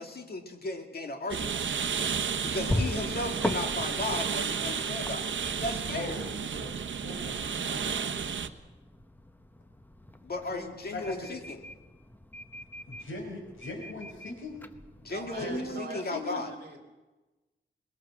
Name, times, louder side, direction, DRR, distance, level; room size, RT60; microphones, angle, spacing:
voice 1, 0.0-1.6 2.4-5.3 5.6-6.2 10.2-11.6 15.0-16.5, left 2 dB, 50° left, 4 dB, 2.3 m, -35 dB
sound 1, 1.3-8.5, right 6 dB, 70° right, 1.0 m, -32 dB
sound 2, 2.4-15.8, left 1 dB, 10° left, 0.8 m, -40 dB
voice 2, 2.6-3.1 5.9-6.7 7.0-7.3 7.6-8.0 10.5-10.6 10.9-11.1 12.9-14.6 15.4-16.4, left 2 dB, 85° left, 2 dB, 4.7 m, -39 dB
voice 3, 15.1-16.8, right 4 dB, 55° right, 4 dB, 2.9 m, -42 dB
23.0 x 20.5 x 6.3 m, 1.1 s
wide cardioid pair, 170°, 20 cm